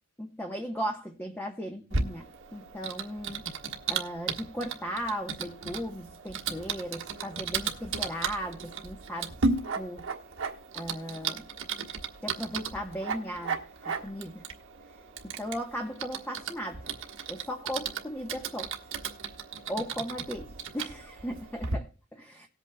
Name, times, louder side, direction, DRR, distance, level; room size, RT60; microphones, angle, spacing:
voice 1, 0.2-3.4 3.9-9.3 9.8-10.1 10.7-11.5 12.2-14.4 15.2-16.9 17.3-18.7 19.7-20.5 20.7-22.5, equal, 10° left, 1.0 m, -37 dB
Typing, 1.9-21.7, right 4 dB, 65° right, 1.4 m, -35 dB
19.0 x 8.3 x 2.2 m
head